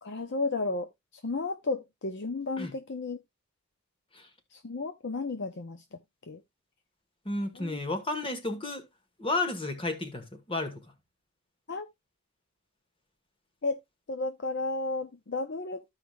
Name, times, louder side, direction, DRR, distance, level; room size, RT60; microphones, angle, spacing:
voice 1, 0.0-0.9 1.2-3.2 4.5-5.8 6.3-6.4 7.6-7.8 11.7-11.9 13.6-13.8 14.1-15.9, left 3 dB, 50° left, 0.7 m, -33 dB
voice 2, 7.2-8.8 9.2-10.8, left 2 dB, 25° left, 1.4 m, -32 dB
14.5 x 4.9 x 2.3 m
head